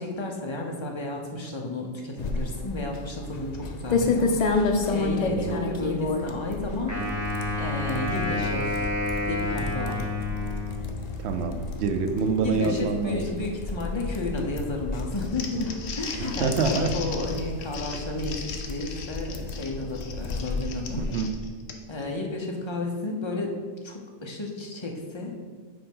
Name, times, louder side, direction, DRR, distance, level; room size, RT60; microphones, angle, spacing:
voice 1, 0.0-7.3 7.6-8.9 9.2-10.1 12.4-21.0 21.9-23.5 23.8-25.3, left 2 dB, 30° left, 0 dB, 0.6 m, -32 dB
sound 1, 2.2-21.3, left 3 dB, 80° left, 0.3 m, -31 dB
voice 2, 5.3-5.6 11.2-13.3 16.2-17.0 21.0-21.3, right 5 dB, 60° right, 6 dB, 0.8 m, -26 dB
Wind instrument woodwind instrument, 6.9-11.2, left 2 dB, 15° right, 1.6 m, -30 dB
Crumpling crinkling, 15.1-22.0, left 5 dB, 60° left, 0.8 m, -39 dB
5.2 x 4.4 x 5.4 m, 1.5 s
omnidirectional pair, 1.5 m